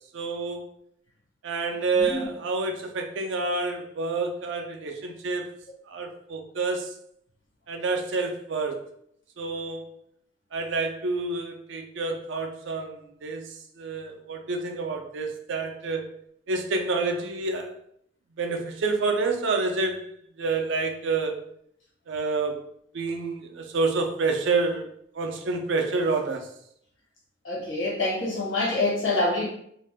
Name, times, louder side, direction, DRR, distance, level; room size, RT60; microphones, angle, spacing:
voice 1, 0.1-0.6 1.4-5.5 5.9-6.9 7.7-8.8 9.4-10.0 10.5-13.5 13.8-16.1 16.5-17.7 18.4-20.1 20.4-21.4 22.1-22.6 22.9-24.9 25.1-26.5, right 3 dB, 65° right, 4 dB, 0.4 m, -28 dB
voice 2, 27.4-29.5, left 2 dB, 70° left, -4 dB, 1.3 m, -26 dB
2.5 x 2.1 x 3.4 m, 0.69 s
head